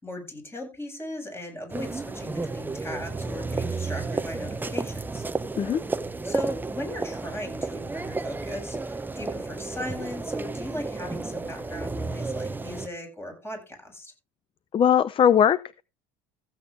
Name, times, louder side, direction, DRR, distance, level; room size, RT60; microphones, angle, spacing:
voice 1, 0.0-5.2 6.2-14.1, left 1 dB, 15° left, 3 dB, 7.9 m, -37 dB
sound 1, 1.7-12.9, right 3 dB, 10° right, 0.9 m, -32 dB
voice 2, 14.7-15.8, left 8 dB, 35° left, 18 dB, 0.6 m, -20 dB
15.0 x 8.6 x 3.5 m, 0.29 s
supercardioid pair, 95°, 15 cm